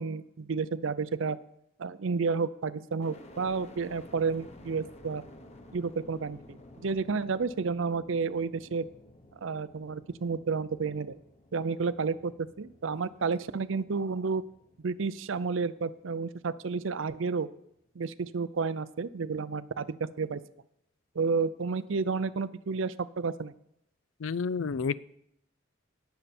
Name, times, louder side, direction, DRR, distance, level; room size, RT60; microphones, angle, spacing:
voice 1, 0.0-1.4 1.8-5.2 5.7-6.6 6.8-8.9 9.4-11.2 11.5-14.4 14.8-17.5 18.0-20.4 21.2-23.5, right 4 dB, 75° right, 0.5 m, -31 dB
sound 1, 3.0-17.0 17.5-18.2, left 1 dB, 35° left, 1.2 m, -54 dB
voice 2, 24.2-25.0, left 5 dB, 75° left, 0.4 m, -30 dB
18.5 x 6.8 x 4.3 m
head